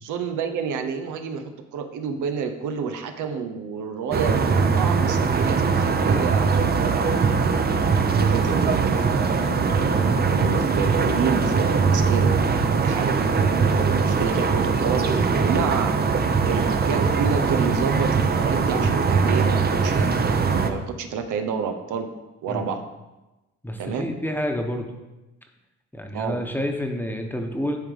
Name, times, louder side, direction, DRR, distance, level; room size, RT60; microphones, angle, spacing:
voice 1, 0.0-4.4 4.7-7.8 8.2-16.1 16.4-22.1 22.4-22.8 23.8-24.1 26.1-26.4, right 6 dB, 80° right, 6 dB, 0.8 m, -29 dB
sound 1, 4.1-20.7, right 5 dB, 30° right, 0.7 m, -21 dB
voice 2, 23.6-24.9 25.9-27.8, equal, 5° left, 3 dB, 1.1 m, -29 dB
10.5 x 3.6 x 5.1 m, 1.0 s
cardioid pair, 90°, 30 cm